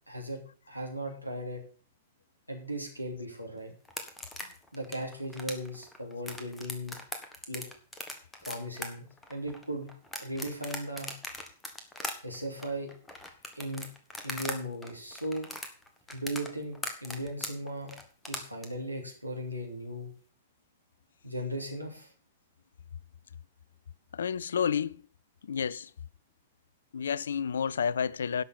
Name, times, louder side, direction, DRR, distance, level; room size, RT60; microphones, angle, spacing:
voice 1, 0.1-0.4 0.7-1.6 2.5-3.7 4.7-7.0 7.5-7.6 8.4-9.9 10.2-11.1 12.2-12.9 13.5-13.9 14.2-15.5 16.1-18.0 18.3-20.1 21.2-22.1, equal, 90° right, 3.1 m, -37 dB
sound 1, 3.8-14.6 14.8-18.7, left 2 dB, 10° left, 1.7 m, -39 dB
voice 2, 24.1-25.0 25.5-25.9 26.9-28.4, left 7 dB, 65° left, 0.4 m, -30 dB
11.0 x 6.5 x 6.8 m
figure-of-eight pair, 105°, 0 cm